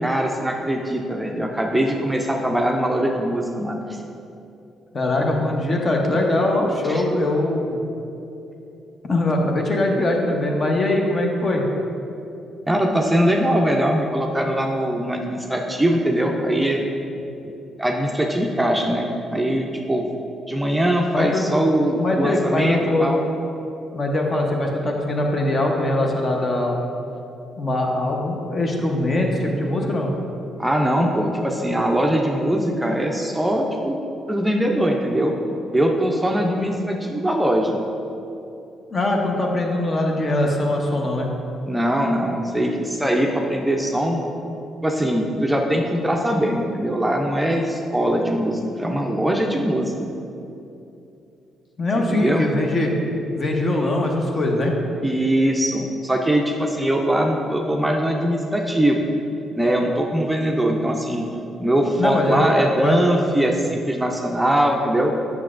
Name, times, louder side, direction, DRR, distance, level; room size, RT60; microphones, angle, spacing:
voice 1, 0.0-4.0 6.9-7.0 12.7-16.8 17.4-17.5 17.8-20.0 20.5-23.3 30.6-34.0 34.3-35.3 35.7-37.8 41.7-44.3 44.8-49.9 52.0-52.4 55.0-59.0 59.6-61.2 61.6-65.2, right 1 dB, 5° right, 0 dB, 0.5 m, -21 dB
voice 2, 4.9-7.8 9.1-11.6 21.1-21.5 22.0-23.1 23.9-26.8 27.6-30.1 36.6-36.7 38.9-41.3 51.8-52.9 53.3-54.8 62.0-62.4 62.8-63.1, left 1 dB, 40° left, 0 dB, 0.9 m, -22 dB
8.2 x 5.9 x 2.5 m, 2.8 s
cardioid pair, 90°, 0 cm